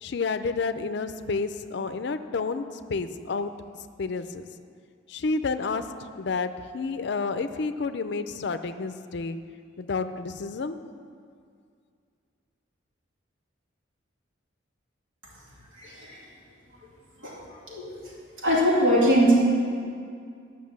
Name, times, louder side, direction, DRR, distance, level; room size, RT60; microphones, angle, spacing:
voice 1, 0.0-3.5 4.0-4.5 5.1-5.8 6.2-9.4 9.8-10.8, left 4 dB, 60° left, 10 dB, 0.4 m, -30 dB
voice 2, 15.7-16.2 17.2-17.3 17.7-18.1 18.4-19.4, right 1 dB, 80° right, -5 dB, 2.5 m, -22 dB
10.5 x 6.0 x 7.3 m, 2.3 s
head